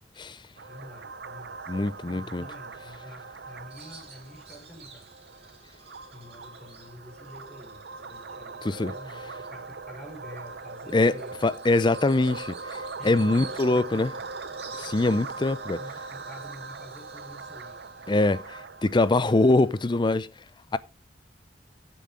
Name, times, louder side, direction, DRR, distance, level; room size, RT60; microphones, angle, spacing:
voice 1, 0.5-5.1 5.3-5.5 6.1-11.4 13.0-14.3 14.6-18.1, left 1 dB, 5° left, 5.6 m, -48 dB
sound 1, 0.6-19.9, right 4 dB, 65° right, 0.8 m, -41 dB
voice 2, 1.7-2.4 8.6-8.9 10.9-11.1 11.4-14.1 14.8-15.8 18.1-20.3 20.7-20.8, left 2 dB, 25° left, 0.5 m, -23 dB
Bird vocalization bird call bird song, 3.7-19.7, right 5 dB, 35° right, 3.2 m, -52 dB
15.0 x 7.0 x 3.8 m
head